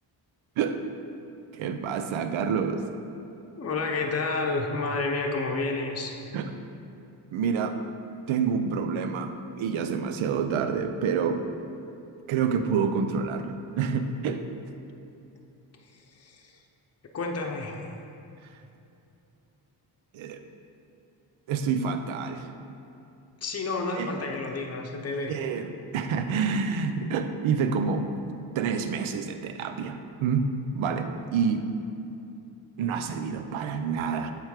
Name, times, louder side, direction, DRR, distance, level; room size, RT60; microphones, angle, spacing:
voice 1, 1.5-2.8 6.3-6.5 7.3-7.8 8.3-11.4 12.3-14.5 20.1-20.4 21.5-22.5 23.9-24.1 25.3-30.5 30.7-31.7 32.8-34.3, right 6 dB, 75° right, 8 dB, 0.6 m, -28 dB
voice 2, 3.6-6.2 16.2-16.5 17.1-17.8 23.4-25.3, left 3 dB, 30° left, 2 dB, 0.8 m, -30 dB
8.0 x 3.4 x 4.8 m, 2.7 s
cardioid pair, 70°, 48 cm